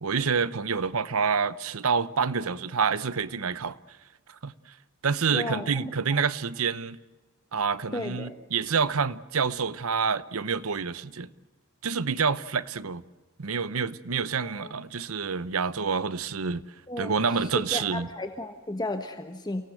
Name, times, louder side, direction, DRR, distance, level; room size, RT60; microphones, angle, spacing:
voice 1, 0.0-3.8 4.4-4.5 5.0-7.0 7.5-11.3 11.8-13.0 13.4-16.6 17.0-18.1, right 5 dB, 75° right, 0.8 m, -27 dB
voice 2, 5.3-6.2 7.9-8.3 14.4-14.7 16.9-19.6, left 1 dB, 20° left, 1.2 m, -34 dB
29.5 x 18.0 x 7.8 m
head